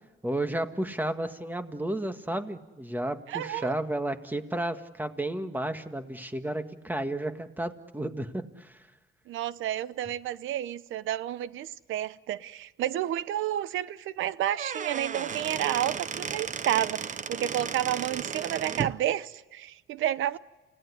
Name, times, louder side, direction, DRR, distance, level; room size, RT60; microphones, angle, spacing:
voice 1, 0.2-8.8, right 1 dB, 10° right, 1.8 m, -32 dB
voice 2, 3.3-3.7 9.3-20.4, right 12 dB, 85° right, 0.8 m, -30 dB
Squeak / Wood, 14.4-19.0, right 6 dB, 40° right, 0.9 m, -34 dB
29.0 x 17.5 x 9.8 m
cardioid pair, 90°, 20 cm